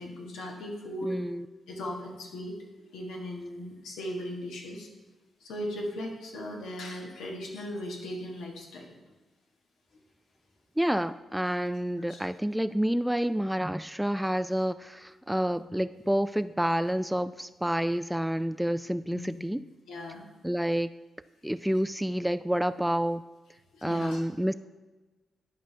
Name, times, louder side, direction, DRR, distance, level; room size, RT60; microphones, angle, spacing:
voice 1, 0.0-1.2 1.7-2.5 2.9-4.9 5.4-8.9 12.1-12.2 19.1-19.5 19.9-20.2 23.7-24.2, left 1 dB, 85° left, 0 dB, 1.4 m, -37 dB
voice 2, 1.0-1.5 10.8-19.6 20.4-20.9 21.4-23.2 23.8-24.5, equal, 5° right, 14 dB, 0.3 m, -29 dB
11.0 x 5.2 x 3.3 m, 1.2 s
supercardioid pair, 55°, 0 cm